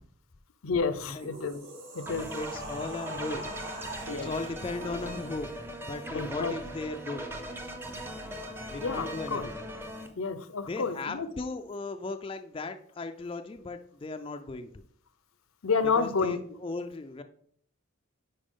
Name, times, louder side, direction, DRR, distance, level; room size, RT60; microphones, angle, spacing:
voice 1, 0.6-1.6 1.9-2.3 4.1-4.3 6.1-6.5 8.8-9.5 10.2-11.3 15.6-16.4, left 5 dB, 80° left, 13 dB, 0.6 m, -30 dB
sound 1, 1.0-5.6, right 1 dB, 60° right, 3.4 m, -44 dB
sound 2, 2.1-10.1, equal, 10° right, 0.7 m, -39 dB
voice 2, 2.3-3.4 4.1-7.3 8.7-9.6 10.7-14.8 16.0-17.2, left 3 dB, 25° left, 7 dB, 0.3 m, -37 dB
10.0 x 4.3 x 3.7 m, 0.63 s
head